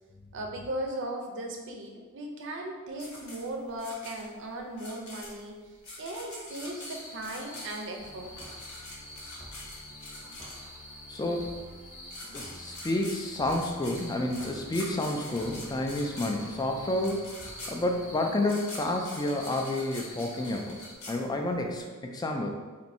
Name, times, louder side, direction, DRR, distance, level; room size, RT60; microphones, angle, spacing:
voice 1, 0.3-5.6 6.0-8.3, right 1 dB, 55° right, 2 dB, 0.5 m, -37 dB
sound 1, 3.0-10.9 11.8-11.9 12.1-21.7, left 2 dB, 70° left, 0.9 m, -45 dB
sound 2, 6.5-20.9, left 1 dB, 40° left, 0.8 m, -48 dB
sound 3, 8.0-18.3, equal, 15° right, 0.7 m, -50 dB
voice 2, 11.1-11.5 12.3-17.3 17.7-20.8 21.1-22.5, left 1 dB, 20° left, 2 dB, 0.3 m, -30 dB
2.6 x 2.6 x 4.1 m, 1.4 s
head